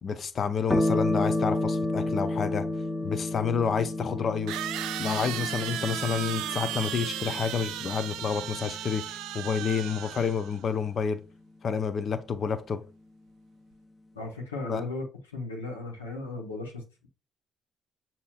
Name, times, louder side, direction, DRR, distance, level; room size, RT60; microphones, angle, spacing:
voice 1, 0.0-2.7 3.0-4.6 5.0-9.0 9.3-11.2 11.6-12.8 14.7-14.8, left 6 dB, 50° left, 0.6 m, -29 dB
sound 1, 0.7-9.6, left 1 dB, 25° left, 0.8 m, -31 dB
sound 2, 2.9-3.0 4.5-10.6, right 12 dB, 70° right, 0.3 m, -35 dB
voice 2, 14.1-15.0 15.3-17.1, left 3 dB, 85° left, 0.9 m, -36 dB
6.8 x 2.8 x 2.4 m
figure-of-eight pair, 45°, 0 cm